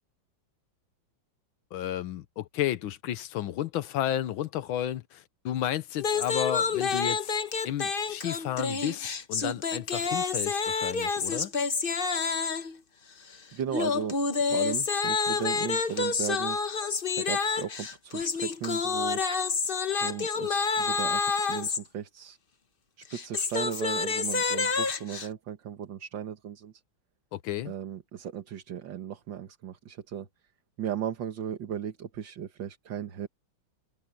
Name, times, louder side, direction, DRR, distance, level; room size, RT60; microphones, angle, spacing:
voice 1, 1.7-7.3 7.6-11.5 27.3-27.7, left 12 dB, 90° left, 1.7 m, -32 dB
sound 1, 6.0-12.8 13.7-21.8 23.0-25.3, left 5 dB, 35° left, 1.0 m, -28 dB
voice 2, 13.5-16.6 17.2-19.2 20.0-22.4 23.0-26.7 27.7-30.3 30.8-33.3, right 9 dB, 70° right, 2.0 m, -36 dB
omnidirectional pair, 2.2 m